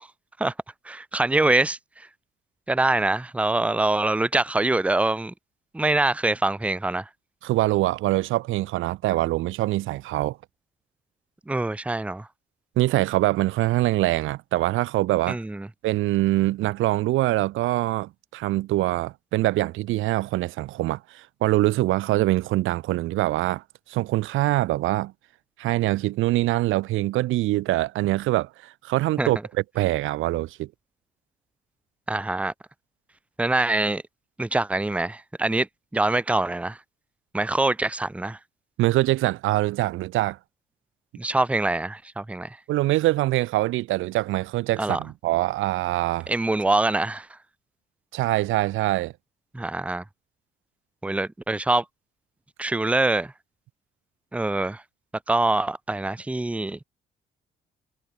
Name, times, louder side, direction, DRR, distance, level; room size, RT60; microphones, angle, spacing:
voice 1, 0.9-1.8 2.7-5.3 5.7-7.0 11.5-12.3 15.3-15.7 29.2-29.3 32.1-32.5 33.4-34.0 34.4-35.7 35.9-36.8 37.3-38.4 41.2-42.6 44.8-45.0 46.3-47.3 49.5-50.0 51.0-51.8 52.6-53.3 54.3-54.8 55.3-56.8, right 2 dB, 5° right, 0.6 m, -24 dB
voice 2, 7.4-10.4 12.8-15.4 15.8-25.1 25.6-30.7 38.8-40.4 42.7-46.3 48.1-49.1, right 17 dB, 85° right, 0.7 m, -24 dB
cardioid pair, 90°, 20 cm